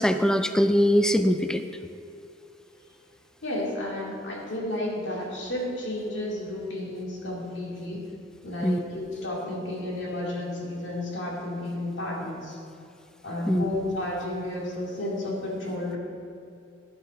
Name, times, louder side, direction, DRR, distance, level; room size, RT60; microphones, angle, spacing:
voice 1, 0.0-1.6 8.6-8.8 13.5-13.7, equal, 5° left, 9 dB, 0.4 m, -22 dB
voice 2, 3.4-8.0 8.4-12.6 13.2-16.0, left 1 dB, 70° left, -3 dB, 2.4 m, -32 dB
11.0 x 6.5 x 5.2 m, 2.6 s
head